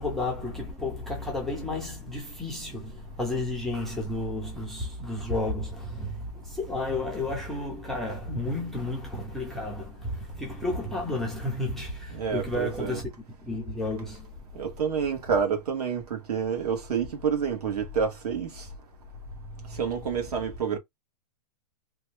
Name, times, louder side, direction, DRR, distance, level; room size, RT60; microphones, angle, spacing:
voice 1, 0.0-13.1 13.4-14.7 19.6-19.8, left 2 dB, ahead, 0.3 m, -32 dB
voice 2, 12.1-13.0 14.5-18.6 19.7-20.8, right 6 dB, 75° right, 1.4 m, -28 dB
2.9 x 2.3 x 3.2 m
supercardioid pair, 170°, 20 cm